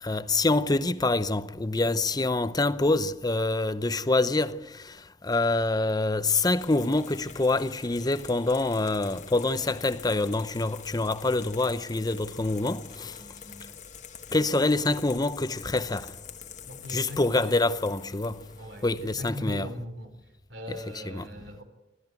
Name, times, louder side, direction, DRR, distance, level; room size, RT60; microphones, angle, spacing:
voice 1, 0.0-5.0 5.2-13.2 14.3-16.1 16.9-18.4 18.8-19.7 20.7-21.3, left 2 dB, 20° left, 0.7 m, -26 dB
sound 1, 6.6-19.3, left 7 dB, 40° left, 1.3 m, -46 dB
voice 2, 13.0-13.7 14.3-14.5 16.7-17.7 18.6-20.2 20.5-21.6, equal, 70° right, 3.6 m, -40 dB
26.5 x 13.0 x 9.2 m
head